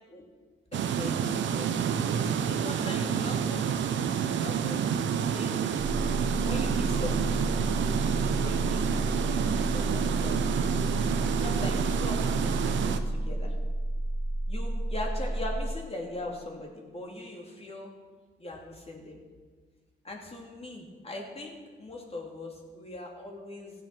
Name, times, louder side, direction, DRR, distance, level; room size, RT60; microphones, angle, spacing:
voice 1, 0.7-1.7 2.4-3.8 4.1-4.9 5.3-5.8 6.4-7.4 7.8-10.7 11.4-13.5 14.5-17.9 18.4-19.2 20.0-23.7, left 2 dB, 30° left, 0 dB, 2.9 m, -41 dB
sound 1, 0.7-13.0, right 7 dB, 70° right, 0.9 m, -29 dB
sound 2, 5.8-15.8, right 1 dB, 40° right, 0.7 m, -31 dB
15.5 x 7.9 x 6.1 m, 1.5 s
cardioid pair, 90°, 20 cm